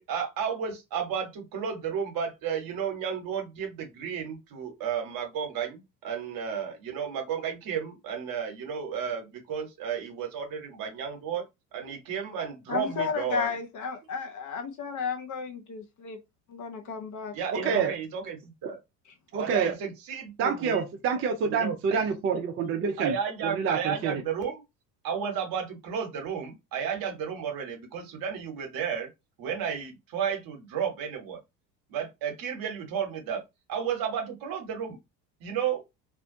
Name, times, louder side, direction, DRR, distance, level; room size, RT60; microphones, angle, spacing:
voice 1, 0.0-11.4 11.7-13.5 17.3-18.8 19.4-20.8 21.5-22.0 23.0-24.6 25.0-29.1 29.4-31.4 31.9-33.4 33.7-35.0 35.4-35.8, right 7 dB, 45° right, 1.1 m, -33 dB
voice 2, 12.7-16.2 16.5-17.8, left 5 dB, 35° left, 0.8 m, -33 dB
voice 3, 17.5-17.9 19.3-19.8 20.4-23.2 23.4-24.2, right 6 dB, 25° right, 0.5 m, -27 dB
2.6 x 2.1 x 2.7 m
hypercardioid pair, 70°, 49 cm